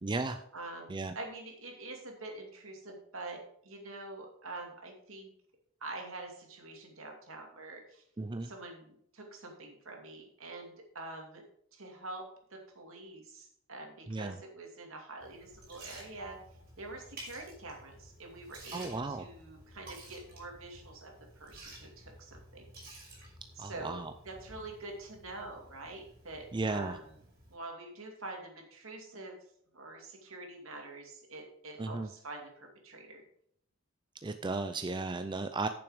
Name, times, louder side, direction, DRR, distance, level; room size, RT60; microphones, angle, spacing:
voice 1, 0.0-0.4 0.9-1.1 8.2-8.5 14.1-14.4 18.7-19.3 23.6-24.1 26.5-27.0 31.8-32.1 34.2-35.7, right 3 dB, 20° right, 8 dB, 0.5 m, -35 dB
voice 2, 0.5-5.3 5.8-8.0 8.4-11.4 11.7-16.4 16.8-22.7 23.5-24.0 24.2-27.2 27.5-29.4 29.7-33.2, right 2 dB, 70° right, 2 dB, 2.6 m, -46 dB
Liquid, 15.2-27.5, right 1 dB, 50° right, 4.6 m, -53 dB
9.2 x 7.0 x 5.0 m, 0.68 s
head